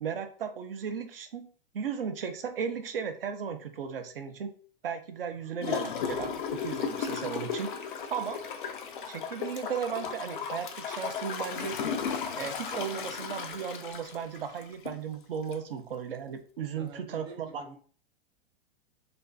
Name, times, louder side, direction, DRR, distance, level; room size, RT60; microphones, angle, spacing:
voice 1, 0.0-4.5 4.8-7.7 8.1-8.4 9.1-11.8 12.3-17.8, right 7 dB, 70° right, 7 dB, 0.5 m, -36 dB
Gurgling / Toilet flush, 5.6-15.0 15.5-15.6, left 7 dB, 60° left, 0.5 m, -35 dB
voice 2, 16.8-17.8, right 3 dB, 15° right, 2 dB, 0.3 m, -48 dB
2.5 x 2.4 x 2.2 m, 0.42 s
figure-of-eight pair, 105°, 29 cm